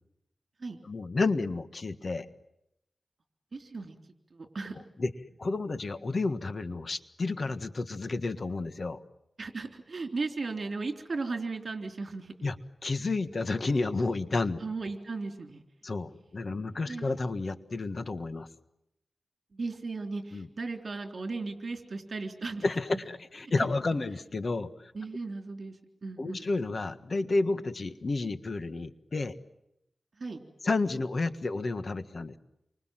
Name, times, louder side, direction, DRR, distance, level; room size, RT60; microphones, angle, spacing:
voice 1, 0.8-2.3 5.0-5.1 5.4-9.0 12.4-12.6 12.8-14.6 15.8-18.5 20.3-20.5 22.6-24.9 26.2-29.4 30.6-32.4, left 3 dB, 50° left, 10 dB, 1.5 m, -31 dB
voice 2, 3.5-4.0 4.3-4.8 9.4-12.3 14.6-15.6 16.9-17.1 19.5-22.7 22.9-23.0 23.6-23.7 24.9-25.8 26.0-26.5 30.2-30.4, right 3 dB, 50° right, 4 dB, 3.6 m, -36 dB
29.5 x 25.0 x 7.6 m, 0.81 s
wide cardioid pair, 120°, 0 cm